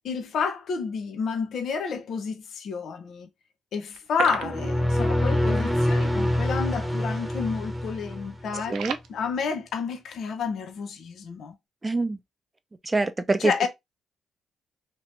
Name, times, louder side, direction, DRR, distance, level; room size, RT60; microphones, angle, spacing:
voice 1, 0.0-3.3 3.7-8.8 9.1-11.5 13.4-13.7, left 6 dB, 70° left, 0.7 m, -30 dB
sound 1, 3.9-5.2 5.4-5.6 5.9-6.0 6.6-6.9 7.2-7.5 7.9-9.1, right 9 dB, 85° right, 0.5 m, -35 dB
sound 2, 4.3-8.6, left 1 dB, 5° right, 1.0 m, -25 dB
voice 2, 11.8-12.2 12.8-13.7, right 3 dB, 20° right, 0.6 m, -25 dB
3.0 x 2.9 x 3.1 m
cardioid pair, 70°, 0 cm